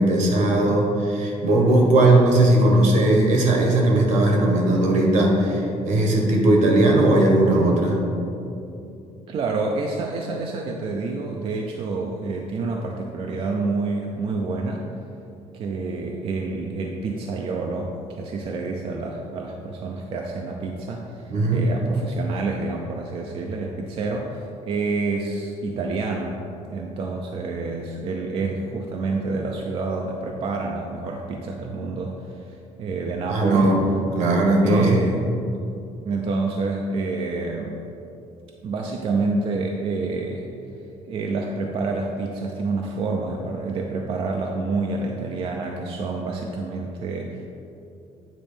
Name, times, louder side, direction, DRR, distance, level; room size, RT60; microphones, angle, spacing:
voice 1, 0.0-8.0 21.3-21.7 33.3-33.8 34.1-35.0, right 1 dB, 75° right, 0 dB, 1.3 m, -18 dB
voice 2, 9.3-14.9 15.5-26.4 26.6-33.8 34.2-34.3 34.6-35.3 36.1-37.8 38.6-40.5 41.1-47.5, right 3 dB, 45° right, 1 dB, 0.5 m, -28 dB
8.8 x 3.1 x 5.1 m, 2.7 s
cardioid pair, 160°, 13 cm